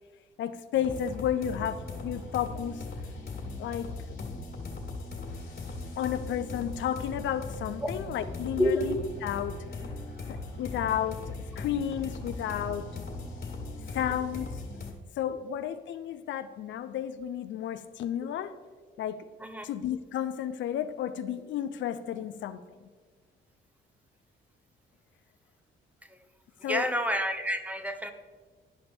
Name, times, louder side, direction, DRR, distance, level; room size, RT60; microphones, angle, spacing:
voice 1, 0.4-2.8 3.6-3.9 6.0-9.0 9.2-9.6 10.3-13.0 13.9-14.5 15.2-18.5 19.0-19.3 19.6-22.6 26.6-26.9, left 10 dB, 70° left, 11 dB, 0.5 m, -32 dB
sound 1, 0.7-14.9, left 3 dB, 50° left, 1.8 m, -39 dB
voice 2, 26.7-28.1, equal, 5° right, 8 dB, 0.7 m, -29 dB
11.0 x 5.2 x 4.3 m, 1.4 s
cardioid pair, 90°, 20 cm